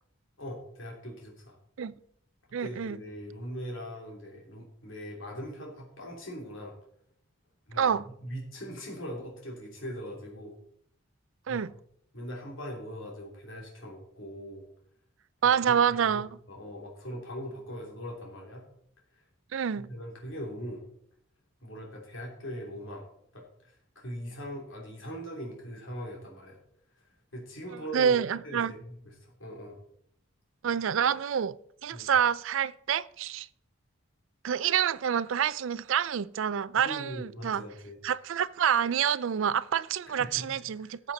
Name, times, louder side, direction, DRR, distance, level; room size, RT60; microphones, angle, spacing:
voice 1, 0.4-1.6 2.5-6.7 7.7-7.9 8.2-10.5 11.5-11.6 12.1-14.6 15.4-16.2 16.5-18.6 19.7-20.8 21.6-26.6 27.3-28.2 28.4-29.8 31.9-32.1 36.7-38.0 40.1-40.5 40.8-40.9, equal, 70° left, 3.1 m, -41 dB
voice 2, 2.5-3.0 7.8-8.1 11.5-11.7 15.4-16.3 19.5-19.9 27.7-28.7 30.6-31.5 31.8-33.5 34.4-37.6 38.0-41.1, right 8 dB, 70° right, 0.4 m, -27 dB
13.0 x 7.3 x 4.1 m
head